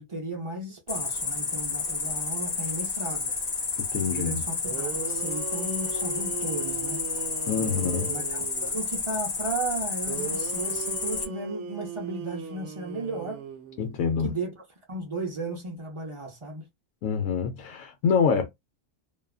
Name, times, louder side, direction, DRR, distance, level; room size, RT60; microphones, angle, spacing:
voice 1, 0.0-3.3 3.9-7.0 7.6-13.4 14.2-14.6 14.9-16.6, right 2 dB, 35° right, 0.5 m, -35 dB
Cricket, 0.9-11.2, left 4 dB, 40° left, 0.7 m, -31 dB
voice 2, 3.9-4.4 7.5-8.1 13.8-14.3 17.0-18.5, left 6 dB, 75° left, 0.9 m, -26 dB
sound 1, 4.3-4.4 4.6-8.8 10.1-14.1, right 6 dB, 65° right, 0.8 m, -38 dB
2.6 x 2.3 x 2.3 m
omnidirectional pair, 1.4 m